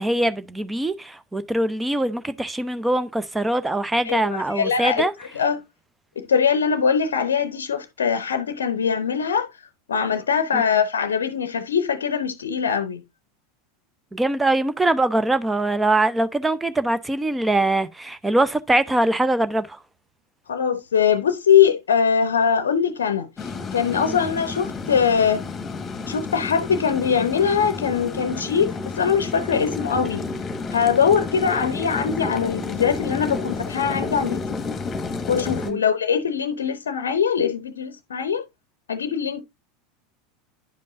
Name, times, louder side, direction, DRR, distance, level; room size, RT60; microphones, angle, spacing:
voice 1, 0.0-5.1 10.5-10.6 14.1-19.8 24.0-24.2 35.6-35.8, right 2 dB, 10° right, 0.6 m, -22 dB
voice 2, 4.0-5.1 5.3-5.6 6.2-9.5 9.9-13.0 20.5-25.4 26.1-30.2 30.7-34.4 35.3-38.4 38.9-39.4, left 7 dB, 70° left, 0.7 m, -22 dB
sound 1, 23.4-35.7, left 4 dB, 20° left, 1.4 m, -30 dB
10.5 x 5.3 x 2.5 m
figure-of-eight pair, 80°, 0 cm